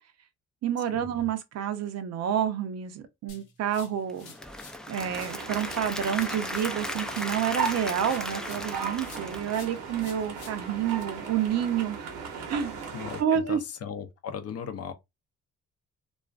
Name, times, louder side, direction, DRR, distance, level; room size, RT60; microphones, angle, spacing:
voice 1, 0.6-4.3 4.9-12.0 12.3-12.8 13.2-13.6, right 9 dB, 60° right, 0.5 m, -29 dB
sound 1, 3.3-4.8 5.1-8.7 9.0-11.0, left 5 dB, 85° left, 0.7 m, -51 dB
Applause / Crowd, 4.1-10.2, left 1 dB, ahead, 0.3 m, -36 dB
sound 2, 4.9-13.2, right 6 dB, 80° right, 0.9 m, -37 dB
voice 2, 12.9-14.9, left 7 dB, 55° left, 0.5 m, -37 dB
2.4 x 2.3 x 2.3 m
cardioid pair, 90°, 30 cm